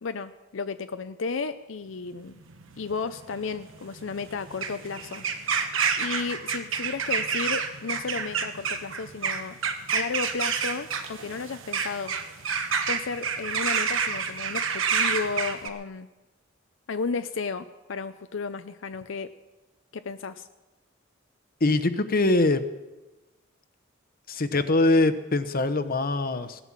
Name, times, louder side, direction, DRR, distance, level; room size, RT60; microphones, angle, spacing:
voice 1, 0.0-2.4 2.8-5.2 6.0-9.6 9.9-12.1 12.9-16.1 16.9-19.3 19.9-20.5, left 4 dB, 70° left, 10 dB, 0.6 m, -33 dB
sound 1, 2.3-15.7, right 6 dB, 85° right, 1.3 m, -29 dB
voice 2, 21.6-22.6 24.3-26.6, left 2 dB, 50° left, 11 dB, 1.0 m, -23 dB
17.5 x 11.0 x 7.4 m, 1.1 s
head